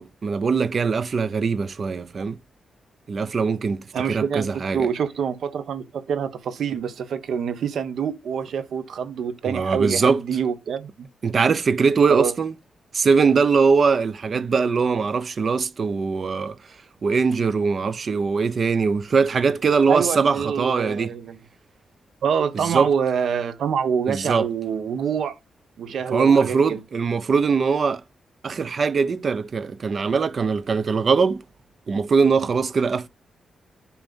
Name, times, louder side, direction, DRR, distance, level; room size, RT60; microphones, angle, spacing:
voice 1, 0.0-2.4 3.1-4.9 9.4-10.2 11.2-12.5 12.9-16.6 17.0-21.1 22.5-22.9 24.1-24.5 26.1-28.0 28.4-31.4 31.9-33.1, right 5 dB, 45° right, 0.7 m, -21 dB
voice 2, 3.9-11.1 12.1-12.3 19.9-21.4 22.2-25.4 25.8-26.8, right 7 dB, 75° right, 1.0 m, -26 dB
7.0 x 3.2 x 5.3 m
wide cardioid pair, 130°, 0 cm